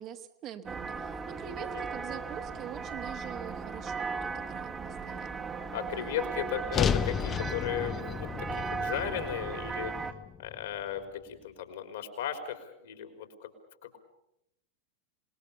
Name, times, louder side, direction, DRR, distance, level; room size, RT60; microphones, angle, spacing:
voice 1, 0.0-5.4, right 9 dB, 35° right, 6 dB, 1.5 m, -44 dB
sound 1, 0.7-10.1, right 5 dB, 15° right, 1.4 m, -37 dB
voice 2, 5.7-9.9 10.4-13.5 13.8-14.0, left 10 dB, 60° left, 7 dB, 3.8 m, -36 dB
sound 2, 6.7-11.0, left 7 dB, 25° left, 0.8 m, -33 dB
27.0 x 20.0 x 6.9 m, 0.80 s
figure-of-eight pair, 90°, 0 cm